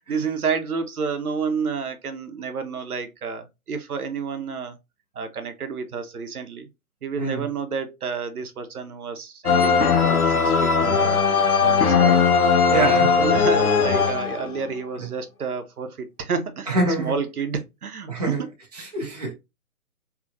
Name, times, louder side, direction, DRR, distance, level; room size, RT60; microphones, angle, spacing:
voice 1, 0.1-4.8 5.1-6.7 7.0-11.2 11.6-12.2 12.7-18.4, right 5 dB, 85° right, 0.7 m, -30 dB
sound 1, 9.5-14.7, left 5 dB, 85° left, 0.7 m, -19 dB
voice 2, 12.7-13.1 15.0-15.1 16.7-17.2 18.1-18.4 18.8-19.3, right 2 dB, 30° right, 0.6 m, -25 dB
2.8 x 2.3 x 2.5 m
hypercardioid pair, 165°, 43 cm